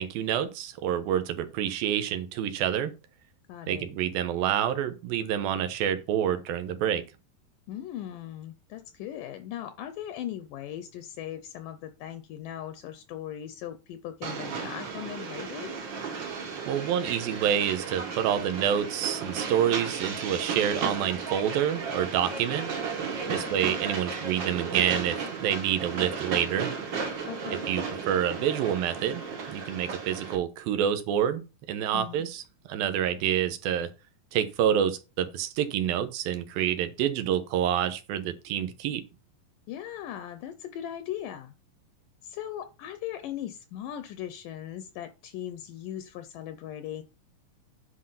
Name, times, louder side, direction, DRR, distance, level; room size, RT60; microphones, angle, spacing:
voice 1, 0.0-2.9 3.7-7.0 16.7-22.7 23.3-26.7 27.7-29.2 29.5-32.4 32.7-33.9 34.3-39.0, right 9 dB, 80° right, 10 dB, 2.8 m, -27 dB
voice 2, 3.5-3.9 7.7-15.8 23.3-23.6 27.3-27.6 31.9-32.2 39.7-41.5 42.2-47.0, left 11 dB, 80° left, 10 dB, 2.2 m, -39 dB
Train, 14.2-30.4, right 5 dB, 55° right, 1.3 m, -34 dB
10.0 x 4.1 x 5.6 m, 0.29 s
omnidirectional pair, 4.2 m